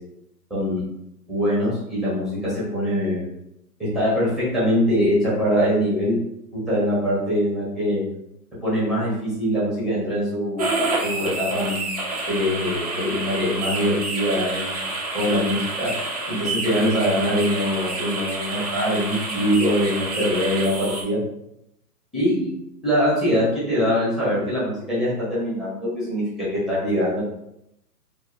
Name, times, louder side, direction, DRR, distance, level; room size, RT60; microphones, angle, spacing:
voice 1, 0.5-0.8 1.3-3.3 3.9-6.2 6.7-8.0 8.6-10.7 11.0-12.0 12.3-14.7 15.1-15.9 16.3-21.2 22.1-22.5 22.8-27.2, equal, ahead, -10 dB, 1.0 m, -23 dB
sound 1, 10.6-21.0, right 3 dB, 25° right, 0.5 m, -28 dB
4.6 x 2.6 x 2.5 m, 0.80 s
hypercardioid pair, 150°, 48 cm